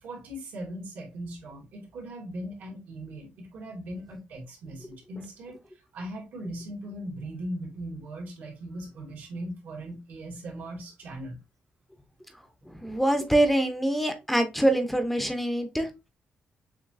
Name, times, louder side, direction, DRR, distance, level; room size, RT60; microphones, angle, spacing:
voice 1, 0.0-5.6 5.9-11.4, right 1 dB, 80° right, 2.5 m, -39 dB
voice 2, 12.8-15.9, right 1 dB, 5° left, 0.6 m, -24 dB
7.1 x 2.9 x 2.5 m
cardioid pair, 145°, 3 cm